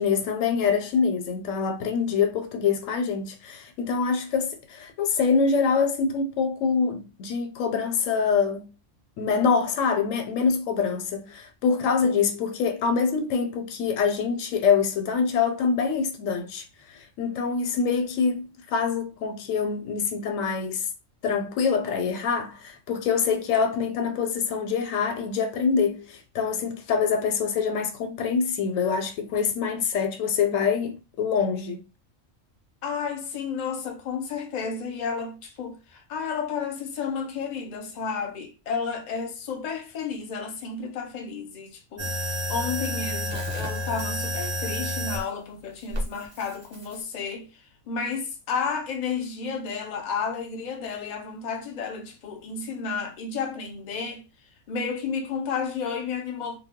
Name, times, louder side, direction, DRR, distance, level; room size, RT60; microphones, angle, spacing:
voice 1, 0.0-8.7 9.2-20.9 21.2-31.8, left 5 dB, 85° left, 1.0 m, -25 dB
voice 2, 32.8-47.5 47.9-54.2 54.7-56.6, left 5 dB, 50° left, 0.6 m, -32 dB
sound 1, 42.0-45.2 45.9-47.0, left 1 dB, 15° right, 0.8 m, -30 dB
2.2 x 2.0 x 3.5 m
omnidirectional pair, 1.3 m